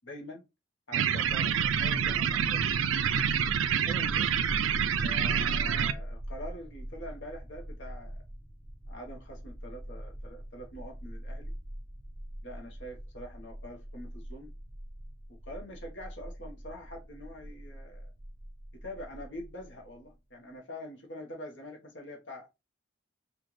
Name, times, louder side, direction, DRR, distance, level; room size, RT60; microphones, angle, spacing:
voice 1, 0.0-0.5 0.9-2.8 3.8-4.3 5.0-8.2 8.9-11.5 12.4-14.6 15.3-18.1 18.7-22.5, left 1 dB, 65° left, 1.1 m, -45 dB
sound 1, 0.9-5.9, right 8 dB, 80° right, 0.4 m, -27 dB
sound 2, 1.2-20.1, equal, 10° right, 0.4 m, -42 dB
4.3 x 2.5 x 3.1 m
head